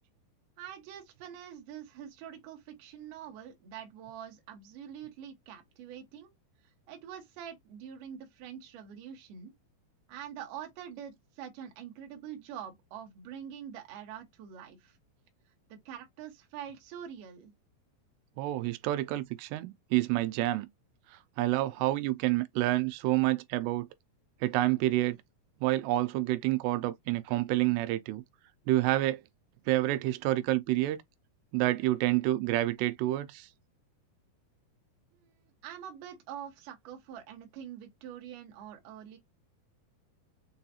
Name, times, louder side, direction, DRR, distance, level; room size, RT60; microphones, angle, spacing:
voice 1, 0.6-6.3 6.9-9.5 10.1-15.0 15.7-17.5 35.1-35.3 35.6-39.2, right 9 dB, 65° right, 2.3 m, -45 dB
voice 2, 18.4-20.7 21.1-23.9 24.4-25.2 25.6-28.2 28.7-29.2 29.7-31.0 31.5-33.5, right 16 dB, 90° right, 2.7 m, -28 dB
6.8 x 2.4 x 2.7 m
omnidirectional pair, 4.7 m